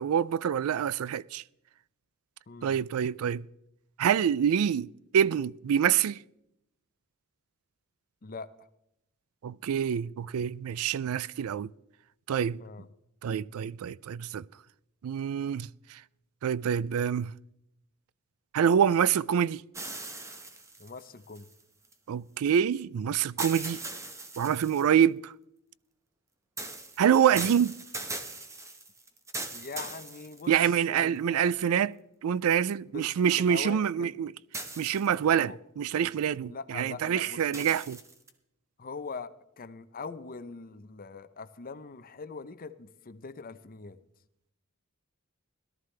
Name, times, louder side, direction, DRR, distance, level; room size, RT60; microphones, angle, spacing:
voice 1, 0.0-1.4 2.6-3.5 4.0-4.9 5.1-6.2 9.4-11.7 12.3-12.6 13.2-14.4 15.0-15.7 16.4-17.3 18.5-19.6 22.1-23.8 24.4-25.3 27.0-27.7 30.5-31.9 32.2-34.3 34.8-38.0, right 8 dB, 80° right, 0.4 m, -26 dB
voice 2, 2.5-2.8 8.2-8.5 12.6-12.9 20.8-21.5 27.3-27.4 29.5-31.5 32.9-34.1 35.3-35.6 36.4-37.8 38.8-39.3 39.6-44.0, left 4 dB, 40° left, 0.7 m, -42 dB
sound 1, 19.7-21.9 23.4-25.0 26.6-30.8 31.5-31.6 34.5-35.4 37.5-38.3, right 2 dB, 15° right, 1.0 m, -40 dB
17.5 x 13.0 x 3.3 m
head